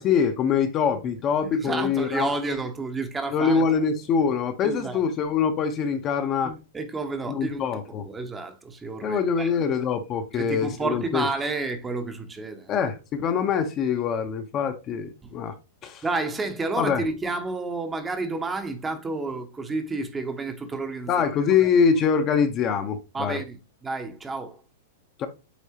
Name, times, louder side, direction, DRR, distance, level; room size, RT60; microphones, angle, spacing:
voice 1, 0.0-2.6 3.3-6.5 7.3-8.0 9.0-11.2 12.7-15.6 15.8-16.0 16.8-17.0 21.1-23.4 25.2-25.3, left 6 dB, 20° left, 0.8 m, -24 dB
voice 2, 1.6-3.6 4.6-5.0 6.4-7.7 8.0-9.5 10.3-12.8 15.2-15.3 16.0-21.1 23.1-24.6, right 3 dB, 10° right, 0.9 m, -30 dB
8.2 x 4.1 x 2.8 m
supercardioid pair, 165°, 0 cm